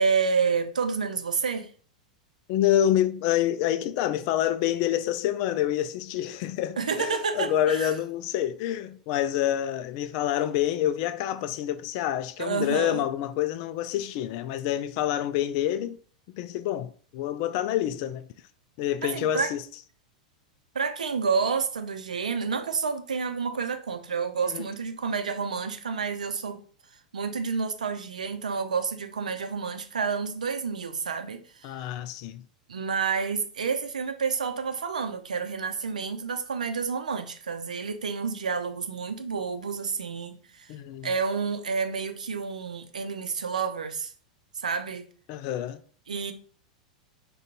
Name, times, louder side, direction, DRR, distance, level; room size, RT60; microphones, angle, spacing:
voice 1, 0.0-1.7 6.8-7.9 12.4-13.0 19.0-19.5 20.7-26.6 27.1-31.7 32.7-40.7 41.0-44.1 44.5-45.1 46.1-46.3, right 5 dB, 75° right, 0.6 m, -29 dB
voice 2, 2.5-16.0 16.4-18.3 18.8-19.6 24.4-24.6 31.6-32.4 40.7-41.1 45.3-45.8, left 11 dB, 45° left, 0.4 m, -27 dB
5.1 x 2.3 x 4.0 m
figure-of-eight pair, 90°, 4 cm